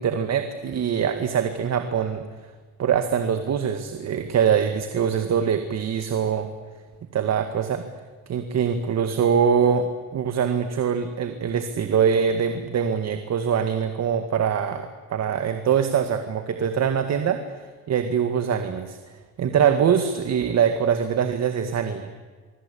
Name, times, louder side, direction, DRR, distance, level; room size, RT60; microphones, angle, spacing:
voice 1, 0.0-2.2 2.8-6.5 7.1-7.9 8.3-19.0 19.4-22.0, right 7 dB, 60° right, 8 dB, 1.9 m, -23 dB
25.0 x 24.0 x 8.6 m, 1.4 s
cardioid pair, 90°, 30 cm